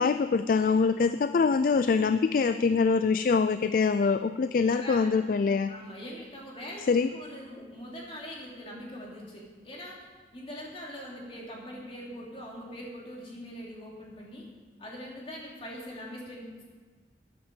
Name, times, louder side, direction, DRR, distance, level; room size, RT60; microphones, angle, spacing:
voice 1, 0.0-5.7 6.9-7.1, left 5 dB, 50° left, 11 dB, 0.3 m, -24 dB
voice 2, 4.7-5.1 5.7-10.0 10.3-14.5 14.8-16.6, equal, 35° left, -3 dB, 2.9 m, -42 dB
14.0 x 8.9 x 5.2 m, 1.5 s
head